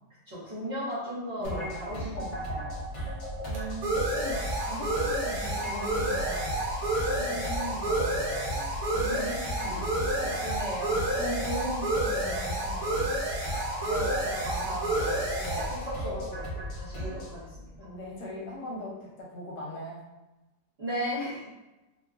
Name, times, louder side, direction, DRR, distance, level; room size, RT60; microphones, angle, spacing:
voice 1, 0.3-2.7 7.1-7.5 8.9-9.4 9.7-9.8 10.2-11.0 13.8-16.3 16.7-17.7 20.8-21.5, equal, 45° right, -10 dB, 0.9 m, -37 dB
sound 1, 1.4-17.3, right 1 dB, 50° left, 0.9 m, -37 dB
sound 2, 1.9-17.3, right 1 dB, 70° right, 1.2 m, -30 dB
voice 2, 3.4-6.7 7.0-8.8 9.6-9.9 10.2-10.3 11.2-13.1 17.8-20.0, equal, 70° left, -3 dB, 1.1 m, -39 dB
2.9 x 2.2 x 2.4 m, 1.0 s
omnidirectional pair, 1.9 m